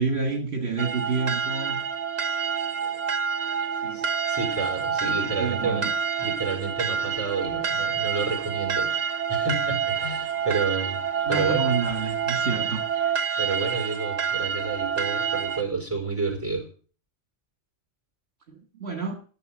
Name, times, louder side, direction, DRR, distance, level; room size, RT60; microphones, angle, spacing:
voice 1, 0.0-1.8 3.8-4.1 5.2-5.9 11.3-12.8 18.5-19.1, right 4 dB, 60° right, 3 dB, 1.9 m, -29 dB
sound 1, 0.8-15.6, right 7 dB, 40° right, 0.8 m, -27 dB
voice 2, 3.9-5.9 6.2-11.0 11.3-11.7 13.4-16.7, right 4 dB, 10° right, 2 dB, 4.6 m, -30 dB
14.0 x 7.3 x 7.4 m, 0.42 s
omnidirectional pair, 1.2 m